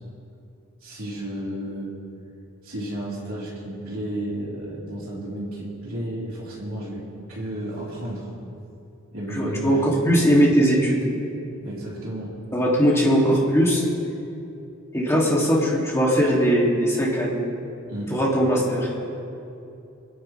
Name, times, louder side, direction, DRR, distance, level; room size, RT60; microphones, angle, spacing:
voice 1, 0.8-2.0 2.6-7.0 7.3-8.3 9.1-9.8 11.6-12.3 17.9-18.1, right 1 dB, 70° right, -7 dB, 3.7 m, -32 dB
voice 2, 9.3-9.8 10.0-11.0 12.5-13.8 14.9-17.4 18.1-18.9, equal, 15° left, -5 dB, 2.4 m, -20 dB
28.0 x 10.0 x 3.3 m, 2.7 s
head